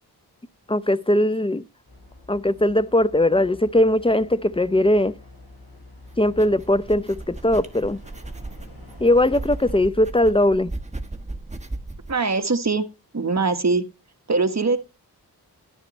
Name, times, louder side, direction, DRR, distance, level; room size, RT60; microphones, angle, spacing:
voice 1, 0.7-1.6 2.3-5.2 6.2-8.0 9.0-10.7, left 1 dB, 15° left, 0.6 m, -20 dB
sound 1, 1.8-9.8, left 2 dB, 65° left, 7.3 m, -47 dB
sound 2, 6.0-12.2, right 2 dB, 15° right, 1.4 m, -36 dB
voice 2, 12.1-12.9 13.1-13.8 14.3-14.8, right 3 dB, 45° right, 1.4 m, -22 dB
11.0 x 10.5 x 3.1 m
cardioid pair, 60°, 39 cm